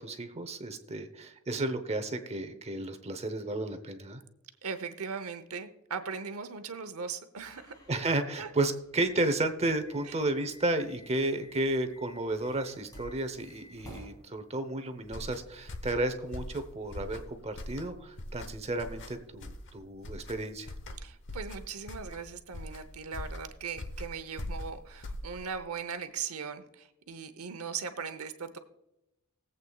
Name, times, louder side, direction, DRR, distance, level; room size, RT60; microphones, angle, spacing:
voice 1, 0.0-4.2 7.9-20.7, right 2 dB, 30° right, 9 dB, 0.9 m, -32 dB
voice 2, 4.6-7.7 8.4-8.5 10.1-10.2 21.0-28.6, right 6 dB, 75° right, 9 dB, 0.9 m, -39 dB
sound 1, 7.4-14.1, equal, 15° left, 3.5 m, -54 dB
sound 2, 15.0-25.7, left 1 dB, 60° left, 0.9 m, -42 dB
20.5 x 8.1 x 2.4 m, 0.88 s
head